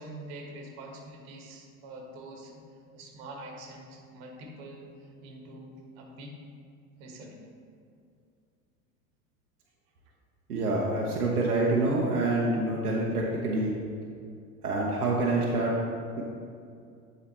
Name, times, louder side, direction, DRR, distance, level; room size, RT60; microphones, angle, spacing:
voice 1, 0.0-2.5 2.9-6.4 7.0-7.4, right 1 dB, 55° right, 1 dB, 1.6 m, -45 dB
voice 2, 10.5-13.8 14.6-15.7 16.2-16.3, right 2 dB, 85° right, -3 dB, 1.0 m, -26 dB
10.5 x 4.0 x 4.3 m, 2.3 s
hypercardioid pair, 85°, 44 cm